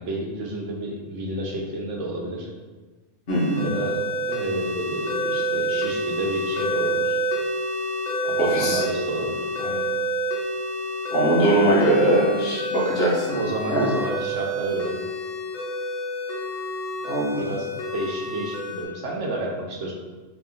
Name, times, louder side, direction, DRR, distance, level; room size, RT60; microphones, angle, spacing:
voice 1, 0.0-2.5 3.6-4.0 4.3-7.2 8.2-9.9 13.3-15.0 17.4-19.9, right 1 dB, 75° right, -1 dB, 1.1 m, -31 dB
sound 1, 3.3-18.8, equal, 75° left, 1.2 m, -28 dB
voice 2, 3.3-3.7 8.4-8.8 11.1-13.4 13.7-13.9 17.0-17.4, right 1 dB, 55° left, -5 dB, 1.2 m, -21 dB
3.7 x 2.8 x 3.7 m, 1.3 s
omnidirectional pair, 1.3 m